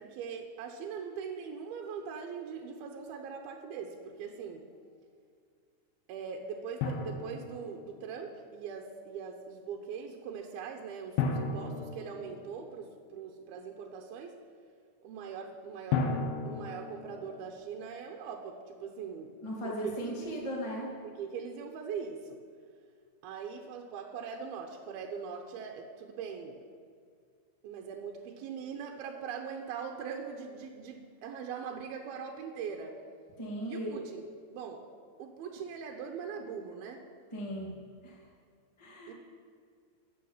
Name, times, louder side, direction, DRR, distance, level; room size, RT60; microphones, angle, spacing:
voice 1, 0.0-4.6 6.1-14.3 15.0-16.1 16.4-19.3 19.6-20.4 21.0-22.4 23.2-26.6 27.6-33.0 33.6-34.8 35.2-37.0 37.6-37.8 39.1-39.2, right 6 dB, 75° right, 3 dB, 2.4 m, -41 dB
Drum, 6.8-8.3 11.2-13.0 15.9-17.5, left 4 dB, 90° left, 3.3 m, -34 dB
voice 2, 19.4-20.9 33.4-33.9 37.3-37.7 38.0-38.2 38.8-39.1, equal, 30° left, -3 dB, 0.5 m, -37 dB
12.5 x 8.6 x 7.2 m, 2.2 s
omnidirectional pair, 5.1 m